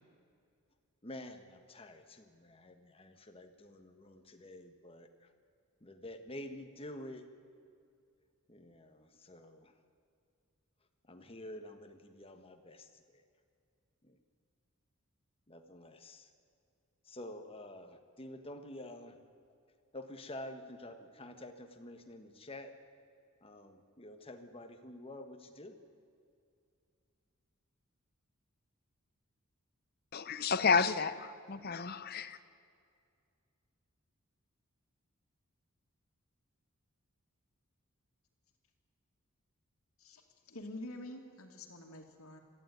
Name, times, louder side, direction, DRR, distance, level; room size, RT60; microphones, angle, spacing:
voice 1, 1.0-5.3 5.8-7.3 8.5-9.7 11.0-13.2 14.0-14.2 15.5-16.3 17.0-19.2 19.9-22.7 23.4-25.8, left 1 dB, 25° left, 7 dB, 1.4 m, -49 dB
voice 2, 30.1-32.4, left 5 dB, 45° left, 12 dB, 0.8 m, -31 dB
voice 3, 40.0-42.4, left 1 dB, 80° left, 3 dB, 2.4 m, -47 dB
21.0 x 14.5 x 9.4 m, 2.4 s
head